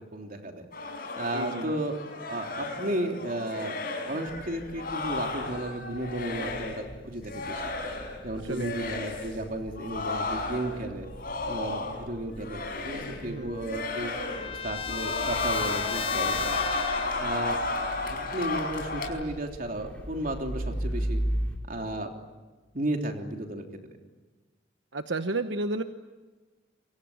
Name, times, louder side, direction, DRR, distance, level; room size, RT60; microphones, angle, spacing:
voice 1, 0.1-0.7 1.2-1.9 2.3-3.8 4.1-7.7 8.2-11.1 11.5-14.2 14.6-16.6 17.2-17.6 18.0-21.2 21.7-22.1 22.7-23.6, right 1 dB, 50° right, 3 dB, 3.3 m, -33 dB
sound 1, 0.7-6.9 7.2-8.2 8.5-9.3 9.7-12.1 12.4-13.3 13.6-14.6 14.8-19.1, left 3 dB, 50° left, 5.2 m, -33 dB
voice 2, 1.3-1.7 8.4-8.7 13.2-13.5 24.9-25.8, right 2 dB, 80° right, 8 dB, 1.1 m, -32 dB
sound 2, 4.3-21.6, right 1 dB, 5° left, 4.7 m, -39 dB
Trumpet, 12.9-17.3, left 6 dB, 30° left, 1.0 m, -36 dB
27.5 x 23.5 x 8.8 m, 1.3 s
head